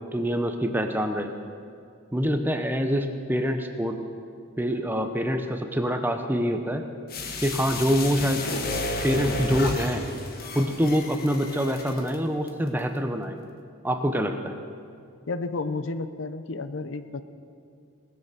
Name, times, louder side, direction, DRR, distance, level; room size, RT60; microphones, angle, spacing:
voice 1, 0.1-1.3 2.1-4.0 4.6-6.9 7.4-8.4 9.0-10.0 10.5-13.4 13.8-14.5, equal, 10° right, 6 dB, 0.6 m, -25 dB
sound 1, 7.1-12.1 12.5-12.6, left 2 dB, 45° left, 1.2 m, -32 dB
voice 2, 15.3-17.2, left 3 dB, 65° left, 11 dB, 0.6 m, -31 dB
19.5 x 6.7 x 6.7 m, 2.4 s
head